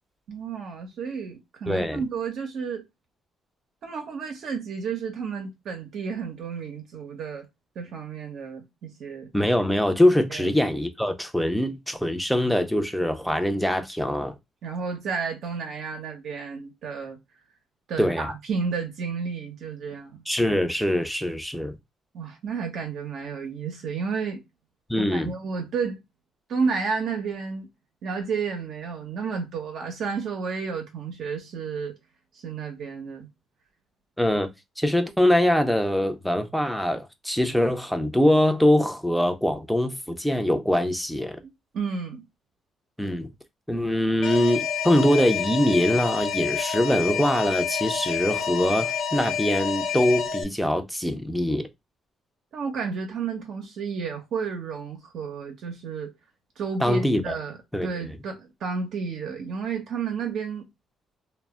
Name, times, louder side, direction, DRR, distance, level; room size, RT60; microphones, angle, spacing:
voice 1, 0.3-2.8 3.8-7.5 7.8-9.3 10.3-10.5 14.6-17.2 17.9-20.2 22.1-24.4 25.0-26.0 26.5-27.7 28.0-32.0 32.3-33.3 41.7-42.2 52.5-56.1 56.6-60.7, right 5 dB, 70° right, 0.6 m, -31 dB
voice 2, 1.7-2.0 9.3-14.3 18.0-18.3 20.3-21.8 24.9-25.3 34.2-34.5 34.8-41.4 43.0-43.3 43.7-51.7 56.8-57.3 57.7-57.9, left 1 dB, ahead, 0.5 m, -23 dB
Alarm, 44.2-50.4, left 7 dB, 80° left, 0.9 m, -28 dB
2.1 x 2.0 x 3.4 m
cardioid pair, 90°, 0 cm